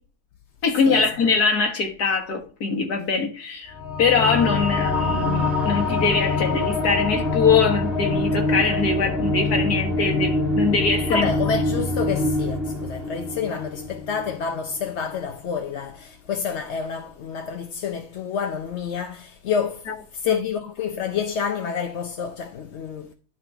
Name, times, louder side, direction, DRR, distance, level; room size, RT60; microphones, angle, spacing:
voice 1, 0.6-3.7 4.0-11.3 19.9-20.0 20.2-20.4, left 5 dB, 75° left, 2.2 m, -22 dB
sound 1, 3.7-14.6, left 2 dB, ahead, 1.4 m, -25 dB
voice 2, 11.1-19.9 20.1-23.1, left 6 dB, 55° left, 0.9 m, -28 dB
11.5 x 4.2 x 4.5 m
omnidirectional pair, 1.7 m